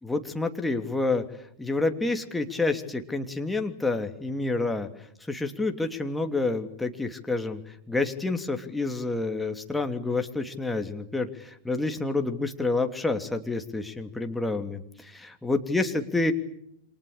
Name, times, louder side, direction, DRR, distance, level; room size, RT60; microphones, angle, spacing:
voice 1, 0.0-1.2 1.6-4.9 5.3-16.3, left 3 dB, 5° left, 6 dB, 3.0 m, -28 dB
29.0 x 26.0 x 6.7 m, 0.73 s
figure-of-eight pair, 90°, 0 cm